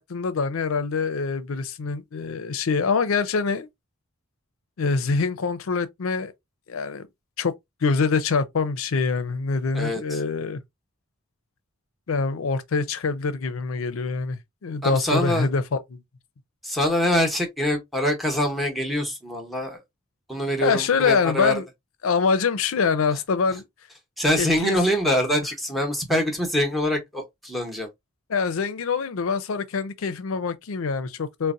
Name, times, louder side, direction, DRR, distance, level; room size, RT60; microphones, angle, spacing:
voice 1, 0.0-3.7 4.8-6.3 6.7-7.0 7.4-7.5 7.8-10.6 12.1-16.0 20.6-21.7 22.0-23.7 24.4-24.8 28.3-31.5, left 5 dB, 70° left, 0.5 m, -25 dB
voice 2, 14.8-15.5 16.6-19.8 20.3-21.6 24.2-27.9, equal, ahead, 0.9 m, -24 dB
4.0 x 2.1 x 2.4 m
head